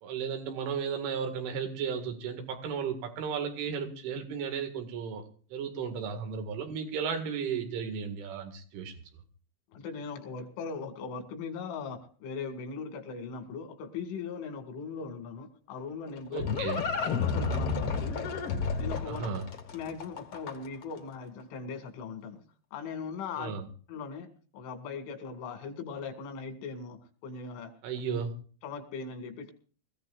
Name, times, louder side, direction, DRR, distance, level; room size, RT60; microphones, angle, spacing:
voice 1, 0.0-5.2 5.5-9.0 16.3-16.8 19.1-19.5 23.4-23.7 27.8-28.4, right 6 dB, 90° right, 4.5 m, -34 dB
voice 2, 9.7-16.5 17.1-18.2 18.8-19.2 19.7-22.4 22.7-23.5 23.9-27.7 28.6-29.5, left 5 dB, 90° left, 4.7 m, -39 dB
Livestock farm animals working animals, 15.8-20.8, left 5 dB, 60° left, 1.4 m, -31 dB
24.0 x 15.5 x 2.5 m
omnidirectional pair, 5.4 m